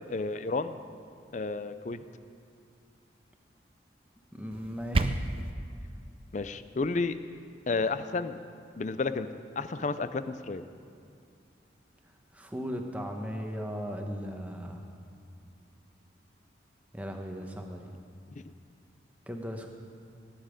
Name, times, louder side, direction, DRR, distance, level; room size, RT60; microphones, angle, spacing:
voice 1, 0.1-0.8 1.3-2.0 6.3-7.2 7.7-8.4 8.8-9.3 9.6-10.6, left 3 dB, 40° left, 12 dB, 0.5 m, -31 dB
voice 2, 4.3-5.2 12.3-14.8 16.9-17.9 19.3-19.7, equal, 10° right, 3 dB, 1.0 m, -37 dB
sound 1, 4.5-5.5, right 2 dB, 30° right, 0.4 m, -29 dB
18.5 x 9.8 x 5.1 m, 2.3 s
head